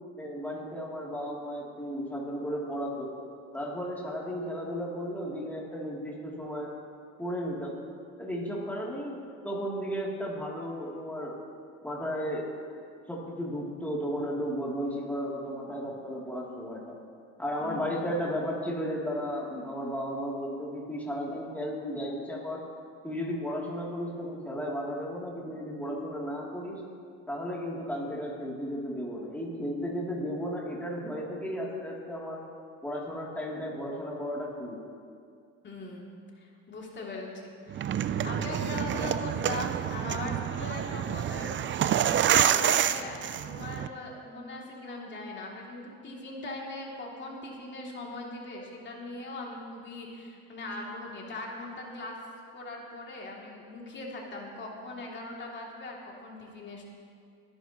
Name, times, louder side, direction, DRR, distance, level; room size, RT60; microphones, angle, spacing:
voice 1, 0.2-3.1 3.5-6.7 7.2-7.7 8.2-9.2 9.4-11.4 11.8-12.5 13.1-16.9 17.4-22.6 23.0-26.8 27.3-32.4 32.8-34.8, equal, 5° left, -4 dB, 3.0 m, -34 dB
voice 2, 17.6-18.1 35.6-36.1 36.4-37.9 38.2-41.5 42.0-52.2 52.5-56.8, left 2 dB, 35° left, -2 dB, 2.9 m, -40 dB
sound 1, 37.7-43.9, right 10 dB, 40° right, 0.5 m, -28 dB
21.5 x 11.0 x 3.1 m, 2.3 s
supercardioid pair, 95°, 31 cm